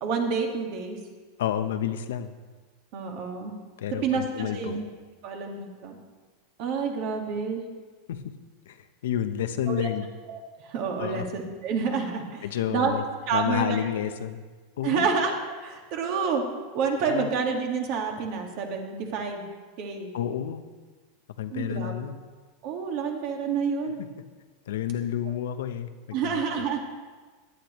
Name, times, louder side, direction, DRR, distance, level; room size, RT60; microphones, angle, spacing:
voice 1, 0.0-1.0 2.9-3.5 4.0-4.8 5.2-6.0 6.6-7.6 9.7-9.9 10.3-12.9 13.3-13.8 14.8-15.3 15.6-16.4 16.7-19.5 19.8-20.1 21.5-21.9 22.6-24.0 26.1-26.8, right 5 dB, 50° right, 2 dB, 1.8 m, -28 dB
voice 2, 1.4-2.3 3.8-4.8 8.1-8.3 8.7-10.1 11.0-11.3 12.4-13.0 13.3-14.4 14.8-15.1 17.1-17.3 20.1-20.6 21.4-22.2 24.0-24.1 24.7-25.9 26.2-26.6, left 10 dB, 85° left, 9 dB, 0.8 m, -30 dB
16.0 x 10.5 x 3.1 m, 1.4 s
supercardioid pair, 145°, 0 cm